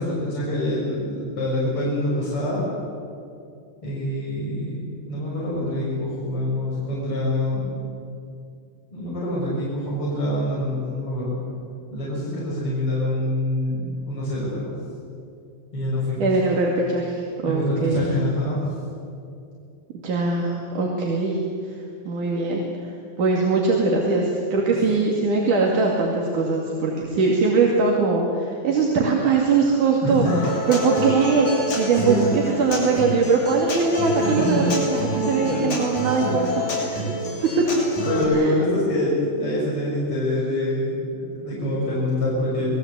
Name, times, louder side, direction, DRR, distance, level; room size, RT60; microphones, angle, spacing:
voice 1, 0.0-2.7 3.8-4.7 5.0-7.7 8.9-11.4 11.9-14.7 15.7-16.3 17.4-18.6 30.0-30.3 32.0-32.2 34.4-34.7 35.1-35.6 38.1-42.8, left 1 dB, 45° left, -6 dB, 7.3 m, -25 dB
voice 2, 16.2-18.1 20.0-21.8 22.1-30.3 30.7-37.0 37.6-37.7 38.3-38.6, right 4 dB, 85° right, -1 dB, 4.0 m, -21 dB
Human voice / Acoustic guitar, 30.3-38.2, right 1 dB, 80° left, 8.0 m, -27 dB
29.0 x 20.5 x 8.3 m, 2.5 s
omnidirectional pair, 3.5 m